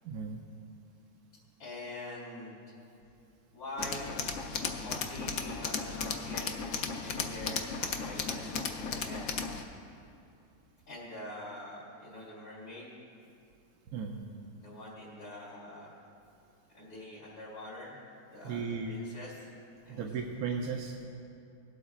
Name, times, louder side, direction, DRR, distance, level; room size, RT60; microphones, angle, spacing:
voice 1, 0.0-0.4 13.9-14.2 18.4-19.0 19.9-21.0, right 5 dB, 80° right, 1 dB, 1.2 m, -35 dB
voice 2, 1.6-2.6 3.5-4.1 4.8-9.3 10.9-12.9 14.6-15.9 16.7-18.0 18.3-19.5 19.8-20.0, left 1 dB, 90° left, -10 dB, 3.5 m, -45 dB
Tools, 3.8-9.6, left 5 dB, 60° left, 1.0 m, -35 dB
21.5 x 8.1 x 2.4 m, 2.6 s
omnidirectional pair, 1.6 m